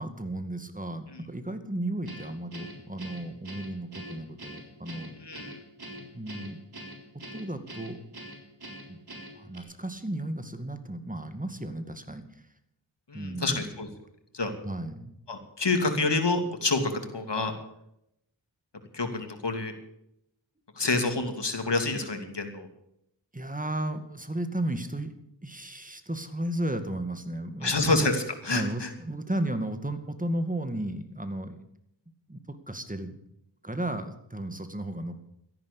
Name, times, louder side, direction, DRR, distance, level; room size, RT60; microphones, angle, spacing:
voice 1, 0.0-5.1 6.0-6.6 7.3-8.0 8.9-9.0 9.3-12.2 13.1-13.7 14.6-15.1 20.8-21.0 23.3-25.1 25.4-27.9 28.5-31.6 32.3-33.2 33.6-35.2, right 1 dB, 15° right, 9 dB, 2.1 m, -34 dB
Guitar, 2.1-9.6, right 1 dB, 50° right, 4.0 m, -44 dB
voice 2, 5.2-5.6 13.1-13.9 14.3-14.5 15.3-17.5 18.9-19.7 20.8-22.7 27.6-28.9, left 3 dB, 60° left, 6 dB, 2.8 m, -28 dB
13.5 x 11.0 x 8.4 m, 0.79 s
wide cardioid pair, 40°, 46 cm